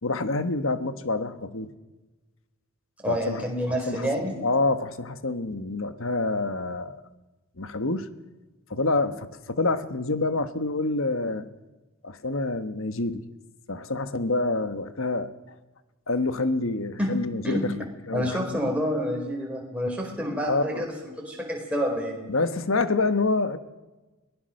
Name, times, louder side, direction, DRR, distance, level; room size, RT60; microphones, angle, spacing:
voice 1, 0.0-1.7 3.1-4.1 4.4-7.0 7.6-8.1 8.7-11.5 12.0-13.2 13.7-15.3 16.1-17.8 18.1-18.4 20.5-20.8 22.3-23.6, left 3 dB, 60° left, 11 dB, 1.3 m, -27 dB
voice 2, 3.0-4.3 17.0-17.1 17.4-17.6 18.1-20.9 21.2-22.3, equal, 5° right, -1 dB, 4.5 m, -28 dB
22.0 x 18.5 x 6.5 m, 1.1 s
head